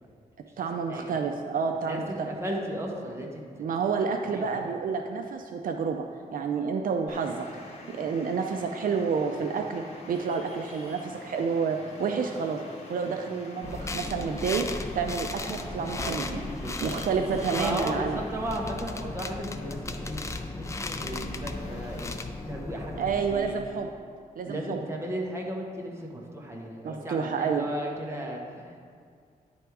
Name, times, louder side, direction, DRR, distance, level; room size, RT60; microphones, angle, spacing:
voice 1, 0.6-2.3 3.6-6.1 6.3-7.5 7.9-12.6 12.9-14.7 14.9-16.4 16.8-18.2 23.0-23.9 24.4-24.8 26.8-27.7, right 5 dB, 65° right, 4 dB, 0.4 m, -29 dB
voice 2, 1.8-3.6 4.2-4.5 16.0-17.1 17.6-22.2 22.5-23.6 24.5-28.8, right 1 dB, 15° right, -1 dB, 0.9 m, -35 dB
Traffic noise roadway noise, 7.1-22.1, left 2 dB, 45° left, 1.2 m, -46 dB
sound 1, 13.6-23.8, left 2 dB, 20° left, 0.3 m, -36 dB
9.7 x 3.4 x 4.6 m, 2.2 s
wide cardioid pair, 140°, 15 cm